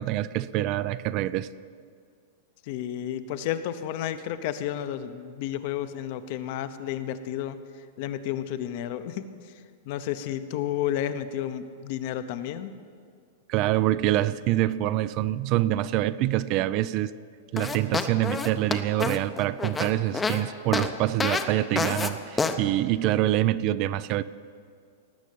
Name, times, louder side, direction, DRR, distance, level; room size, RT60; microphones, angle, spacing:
voice 1, 0.0-1.5 13.5-17.1 17.5-24.2, right 14 dB, 35° right, 0.3 m, -25 dB
voice 2, 2.6-9.5 9.8-12.7, left 11 dB, 45° left, 0.8 m, -32 dB
sound 1, 17.6-20.4 20.7-20.9 21.2-21.4 21.8-22.1 22.4-22.5, left 4 dB, 10° left, 0.6 m, -27 dB
18.0 x 6.3 x 8.5 m
supercardioid pair, 160°, 0 cm